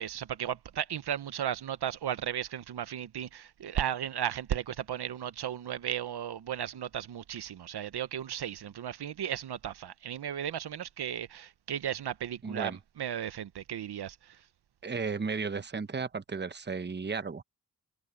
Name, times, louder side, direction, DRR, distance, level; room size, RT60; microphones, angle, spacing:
voice 1, 0.0-14.4, right 10 dB, 85° right, 0.8 m, -35 dB
voice 2, 12.4-12.8 14.8-17.4, right 5 dB, 25° right, 0.9 m, -34 dB
wide cardioid pair, 120°, 39 cm